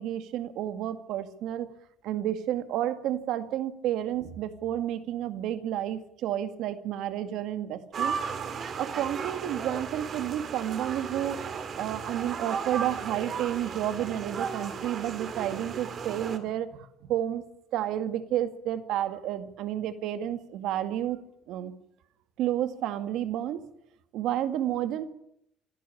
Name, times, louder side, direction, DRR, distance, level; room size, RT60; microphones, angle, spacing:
voice 1, 0.0-1.7 2.0-8.2 8.8-11.4 11.8-17.4 17.7-21.2 21.5-21.7 22.4-23.6 24.1-25.0, right 11 dB, 70° right, 10 dB, 2.1 m, -31 dB
sound 1, 7.9-16.4, right 6 dB, 40° right, 2.5 m, -35 dB
26.5 x 11.0 x 9.9 m, 0.76 s
cardioid pair, 135°, 0 cm